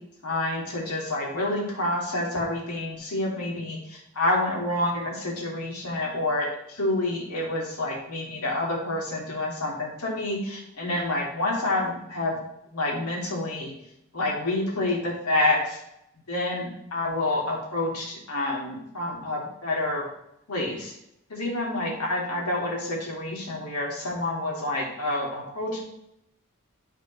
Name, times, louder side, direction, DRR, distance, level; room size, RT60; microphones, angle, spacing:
voice 1, 0.2-12.4 12.7-13.7 14.1-15.8 16.3-20.0 20.5-20.9 21.3-25.8, left 2 dB, 80° left, -3 dB, 2.5 m, -28 dB
11.5 x 4.1 x 3.2 m, 0.79 s
head